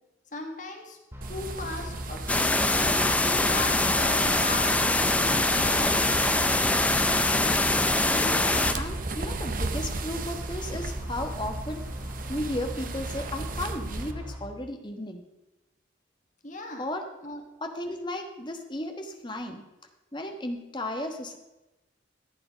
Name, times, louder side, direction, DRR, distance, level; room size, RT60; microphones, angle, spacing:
voice 1, 0.3-1.0 1.3-2.2 2.8-6.2 16.4-16.9 17.2-17.4, left 2 dB, 40° left, 3 dB, 1.6 m, -38 dB
sound 1, 1.1-14.4, equal, 15° right, 2.1 m, -39 dB
sound 2, 1.2-14.1, right 3 dB, 45° right, 0.7 m, -36 dB
sound 3, 2.3-8.7, left 2 dB, 5° left, 0.4 m, -23 dB
voice 2, 8.1-11.9 12.3-15.2 16.8-17.1 17.6-19.6 20.1-21.4, left 1 dB, 25° left, 5 dB, 1.2 m, -35 dB
14.0 x 9.0 x 5.1 m, 0.99 s
head